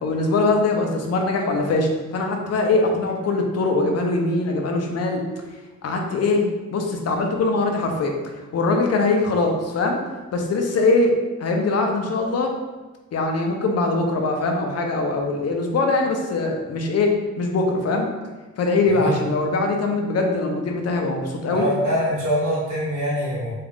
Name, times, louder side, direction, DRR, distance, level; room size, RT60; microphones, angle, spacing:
voice 1, 0.0-5.2 5.8-8.1 8.5-10.0 10.3-12.5 13.1-18.1 18.6-21.7, left 3 dB, 55° left, 2 dB, 0.6 m, -22 dB
voice 2, 18.9-19.2 21.5-23.5, equal, 85° right, -9 dB, 1.3 m, -24 dB
3.6 x 2.4 x 3.5 m, 1.2 s
wide cardioid pair, 150°, 30 cm